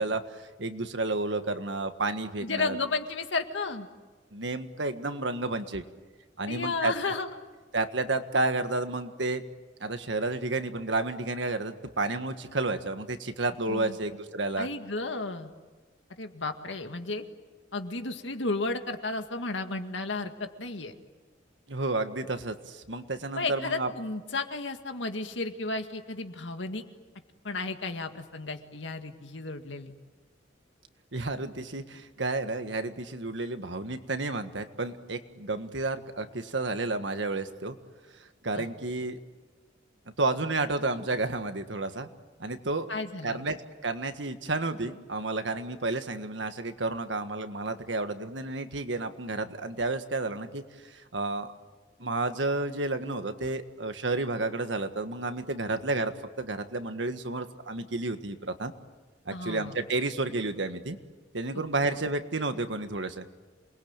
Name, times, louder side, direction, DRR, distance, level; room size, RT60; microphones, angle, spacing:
voice 1, 0.0-2.8 4.3-5.8 6.4-6.9 7.7-9.4 9.8-14.7 21.7-23.9 31.1-37.7 38.2-39.2 40.2-42.1 42.4-42.9 43.2-51.5 52.0-58.7 59.2-61.0 61.3-63.2, right 2 dB, 70° right, 8 dB, 1.6 m, -31 dB
voice 2, 2.4-3.9 6.5-7.3 13.7-14.0 14.6-15.5 16.2-17.2 17.7-20.9 23.4-26.8 27.4-29.9 38.5-38.7 42.9-43.4 59.3-59.8 61.8-61.9, left 3 dB, 75° left, 6 dB, 2.0 m, -33 dB
28.0 x 21.0 x 9.0 m, 1.3 s
head